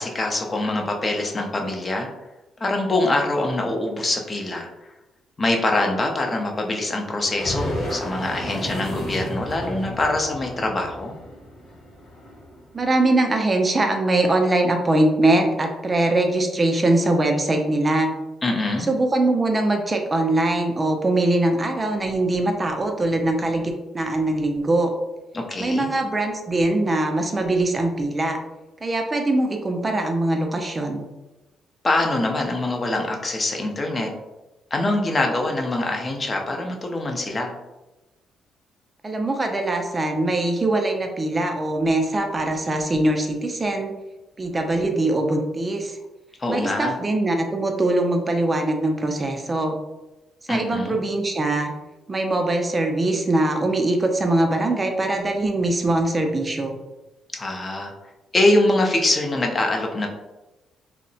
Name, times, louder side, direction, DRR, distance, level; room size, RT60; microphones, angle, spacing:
voice 1, 0.0-2.1 2.6-4.9 5.4-11.1 18.4-18.9 25.3-25.9 31.8-34.1 34.7-37.5 46.4-47.0 50.5-51.0 57.3-57.9 58.3-60.1, left 2 dB, 30° left, 2 dB, 0.5 m, -24 dB
sound 1, 7.1-12.8, equal, 80° left, 0.9 m, -32 dB
voice 2, 12.7-18.1 18.9-24.9 25.6-28.4 28.8-31.0 39.0-43.9 44.4-46.0 46.5-49.8 50.5-51.7 52.1-56.8, right 2 dB, 25° right, 3 dB, 0.3 m, -22 dB
2.7 x 2.0 x 2.6 m, 1.0 s
cardioid pair, 90°, 0 cm